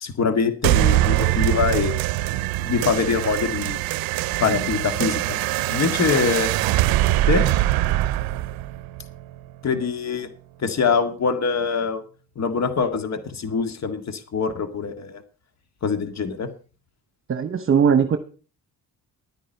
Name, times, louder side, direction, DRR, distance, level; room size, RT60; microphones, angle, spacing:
voice 1, 0.0-2.0 2.6-3.8 4.4-5.4 5.7-6.5 7.3-7.5 9.6-10.3 10.6-12.0 12.4-15.2 15.8-16.5, left 5 dB, 50° left, 9 dB, 2.0 m, -24 dB
sound 1, 0.6-9.6, right 15 dB, 85° right, 0.6 m, -23 dB
voice 2, 17.3-18.2, right 7 dB, 35° right, 9 dB, 1.1 m, -19 dB
11.0 x 10.0 x 5.5 m, 0.36 s
cardioid pair, 80°, 35 cm